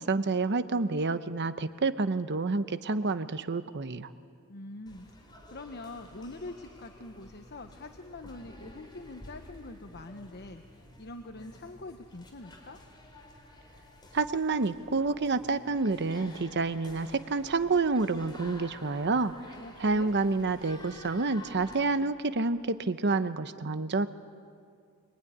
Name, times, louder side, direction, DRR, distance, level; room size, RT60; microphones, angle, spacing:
voice 1, 0.0-4.1 14.1-19.3 19.8-24.1, right 3 dB, 55° right, 11 dB, 0.9 m, -28 dB
voice 2, 4.5-12.8 19.5-20.2, left 2 dB, 50° left, 6 dB, 1.1 m, -44 dB
sound 1, 4.9-22.0, left 1 dB, 20° left, 4.2 m, -51 dB
24.0 x 23.0 x 10.0 m, 2.2 s
head